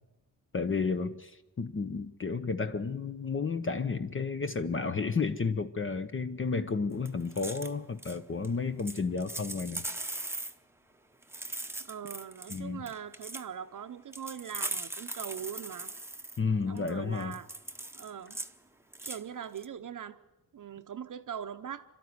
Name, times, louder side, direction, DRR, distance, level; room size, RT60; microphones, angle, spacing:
voice 1, 0.5-9.8 12.5-12.8 16.4-17.4, left 4 dB, 35° left, 0.9 m, -32 dB
sound 1, 7.0-7.7 8.0-8.2 8.4-8.5 8.8-10.5 11.2-12.6 12.9-13.4 14.1-16.4 16.8-16.9 17.2-18.5 18.9-19.2 19.6-19.7, right 2 dB, 5° right, 0.9 m, -39 dB
voice 2, 11.8-15.9 16.7-17.5 17.9-18.4 19.0-20.2 20.5-21.9, right 8 dB, 55° right, 0.8 m, -41 dB
28.0 x 12.5 x 9.6 m
wide cardioid pair, 115°, 37 cm